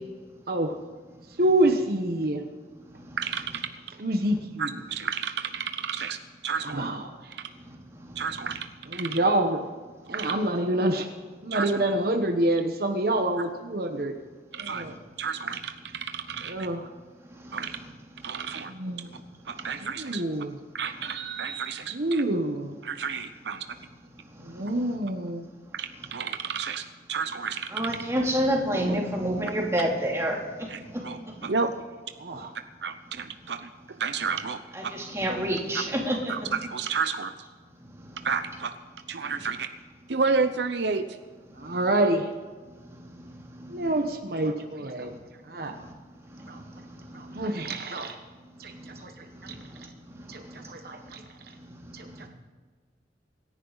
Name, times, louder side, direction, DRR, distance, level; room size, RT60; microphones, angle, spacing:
voice 1, 1.4-2.4 4.0-4.7 6.6-7.0 8.9-9.6 10.1-11.1 11.4-14.1 14.5-14.9 16.4-16.9 18.7-19.1 19.8-20.5 21.9-22.8 24.4-25.4 28.7-29.0 29.4-29.5 32.2-32.5 41.6-42.3 43.7-45.2 45.5-45.8 46.5-46.6 47.1-48.1 48.6-48.7 49.0-49.1 49.4-49.5 50.3-50.4 50.7-51.2 51.9-52.1, right 1 dB, 60° right, 4 dB, 1.1 m, -27 dB
voice 2, 3.2-3.7 4.6-6.2 6.4-6.8 8.2-8.7 8.9-9.2 10.1-10.3 11.5-11.7 14.5-14.9 15.2-16.5 17.5-17.8 18.2-18.7 19.5-20.2 20.7-22.2 22.8-23.6 25.7-27.9 30.7-31.7 32.8-34.6 36.3-37.3 38.2-38.7 39.1-39.7 40.1-41.1, right 5 dB, 75° right, 8 dB, 0.8 m, -31 dB
voice 3, 27.7-30.7 30.9-31.0 34.7-36.5, right 1 dB, 15° right, -1 dB, 3.0 m, -27 dB
26.0 x 11.0 x 4.1 m, 1.5 s
head